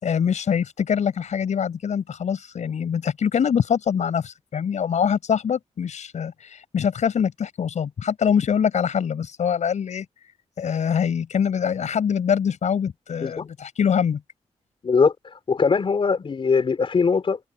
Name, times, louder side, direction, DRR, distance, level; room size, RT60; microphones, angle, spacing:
voice 1, 0.0-10.1 10.6-14.2, left 7 dB, 75° left, 6.2 m, -24 dB
voice 2, 14.8-15.1 15.5-17.4, left 5 dB, 45° left, 4.4 m, -21 dB
open air
wide cardioid pair, 135°, 12 cm